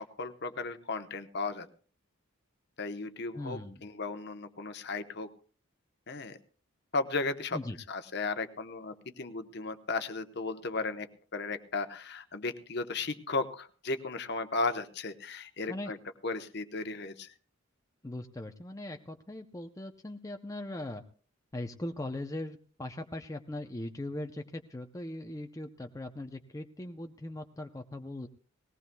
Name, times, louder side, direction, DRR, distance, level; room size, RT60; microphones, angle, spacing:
voice 1, 0.0-1.7 2.8-5.3 6.1-6.4 6.9-7.6 7.9-11.1 11.3-16.0 16.2-17.3, left 3 dB, 50° left, 8 dB, 1.0 m, -35 dB
voice 2, 3.3-3.8 7.5-7.8 15.7-15.9 18.0-21.0 21.5-28.3, left 1 dB, 15° left, 5 dB, 0.6 m, -40 dB
20.0 x 18.0 x 2.3 m, 0.41 s
head